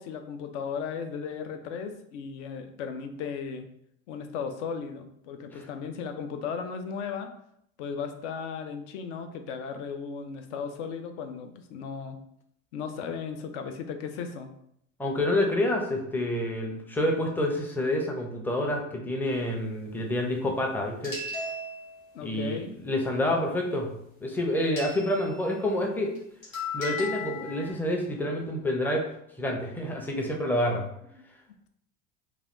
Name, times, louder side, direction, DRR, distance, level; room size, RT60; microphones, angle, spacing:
voice 1, 0.0-3.7 4.1-7.3 7.8-12.2 12.7-14.5 22.1-22.7, left 6 dB, 60° left, 7 dB, 0.6 m, -36 dB
voice 2, 15.0-21.2 22.2-23.9 24.2-26.1 26.7-29.0 29.4-30.9, left 1 dB, 5° left, 1 dB, 0.5 m, -28 dB
sound 1, 21.0-22.1 24.8-25.5 26.2-26.3 26.4-27.7, left 3 dB, 80° left, 1.1 m, -36 dB
3.2 x 2.3 x 2.5 m, 0.73 s
hypercardioid pair, 75°, 40 cm